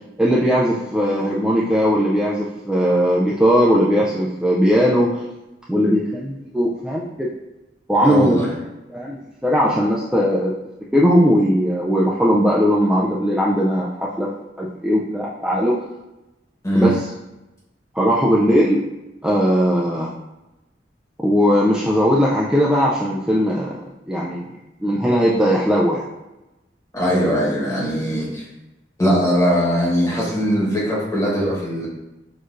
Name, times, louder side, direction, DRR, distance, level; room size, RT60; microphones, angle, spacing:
voice 1, 0.2-5.2 5.7-7.3 7.9-8.5 8.9-10.5 10.9-14.3 14.6-15.7 16.7-17.0 18.0-18.8 19.2-20.1 21.2-23.8 24.1-24.4 24.8-26.1, equal, 5° right, -5 dB, 0.3 m, -18 dB
voice 2, 8.0-8.5 16.6-16.9 26.9-28.4 29.0-31.9, equal, 20° left, -6 dB, 1.2 m, -20 dB
6.1 x 2.5 x 2.5 m, 1.0 s
head